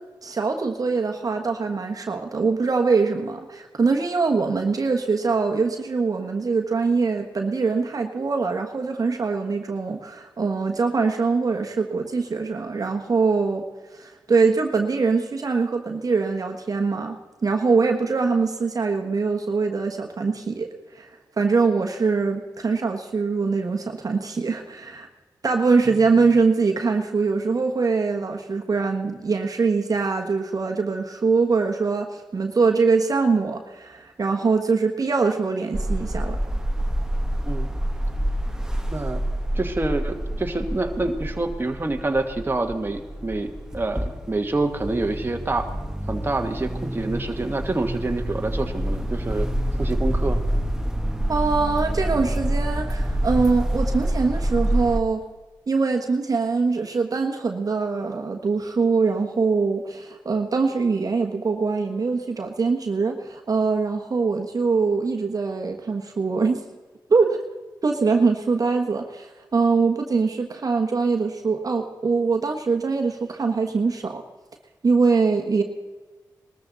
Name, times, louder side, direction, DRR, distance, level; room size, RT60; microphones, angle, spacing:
voice 1, 0.0-13.6 14.0-20.7 20.9-21.1 21.4-25.1 25.4-36.4 51.3-55.2 55.7-66.6 67.1-67.4 67.8-74.2 74.8-75.6, right 4 dB, 50° right, 3 dB, 1.3 m, -23 dB
sound 1, 35.7-55.0, right 1 dB, 10° right, 1.3 m, -27 dB
voice 2, 38.9-39.2 39.5-45.7 46.1-49.5 49.8-50.4, right 2 dB, 25° right, 4 dB, 1.5 m, -27 dB
20.0 x 13.5 x 4.0 m, 1.3 s
supercardioid pair, 45°, 8 cm